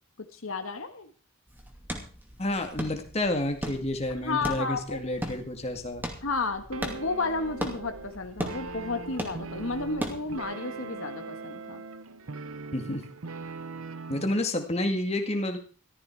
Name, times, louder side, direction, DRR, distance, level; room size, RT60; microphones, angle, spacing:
voice 1, 0.3-1.1 4.2-5.0 6.2-11.8, left 3 dB, 75° left, 7 dB, 1.5 m, -32 dB
Pisadas en Madera, 1.5-10.5, equal, 10° right, 2.4 m, -39 dB
voice 2, 2.4-6.1 12.7-13.0 14.1-15.6, left 1 dB, 30° left, 5 dB, 2.0 m, -29 dB
sound 1, 6.7-14.4, right 3 dB, 85° right, 1.0 m, -40 dB
14.5 x 13.5 x 4.7 m, 0.39 s
head